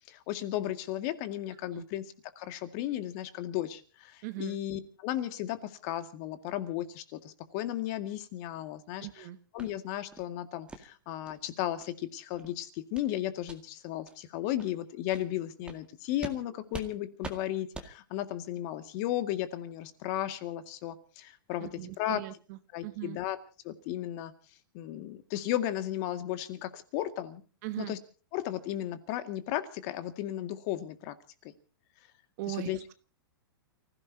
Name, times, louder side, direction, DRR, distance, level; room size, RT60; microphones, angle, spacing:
voice 1, 0.1-2.1 2.4-9.3 9.5-22.2 22.7-23.4 23.6-24.3 24.7-27.4 27.8-28.0 28.3-31.2 32.5-32.9, left 13 dB, 45° left, 9 dB, 2.1 m, -35 dB
voice 2, 4.2-4.6 9.0-9.4 21.6-23.2 27.6-27.9 32.4-32.9, right 17 dB, 45° right, 12 dB, 1.2 m, -39 dB
sound 1, 9.6-9.7 10.1-10.3 10.7-10.8 11.3-11.4 11.8-11.9 12.3-12.5 12.9-13.1 13.4-13.6 14.1-14.2 14.6-14.7 15.1-15.3 15.7-15.8 16.2-16.4 16.7-16.9 17.2-17.4 17.7-17.9, right 3 dB, 10° right, 2.0 m, -43 dB
29.5 x 16.0 x 2.8 m, 0.37 s
hypercardioid pair, 135°, 13 cm